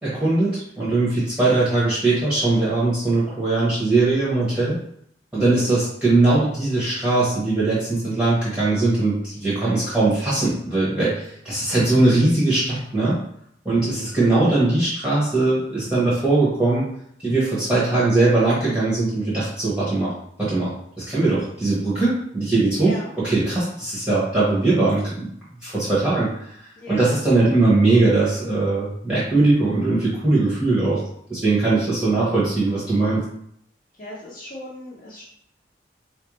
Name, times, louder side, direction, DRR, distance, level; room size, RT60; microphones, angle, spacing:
voice 1, 0.0-4.8 5.3-13.2 13.6-16.9 17.2-20.1 20.4-20.7 21.1-23.0 23.2-25.3 25.6-26.5 26.9-31.0 31.3-33.2, right 2 dB, 5° right, -10 dB, 0.9 m, -20 dB
voice 2, 5.4-5.8 9.6-9.9 13.7-14.0 22.7-23.1 26.8-27.1 34.0-35.2, left 1 dB, 45° left, -8 dB, 0.9 m, -37 dB
4.1 x 2.5 x 3.0 m, 0.70 s
head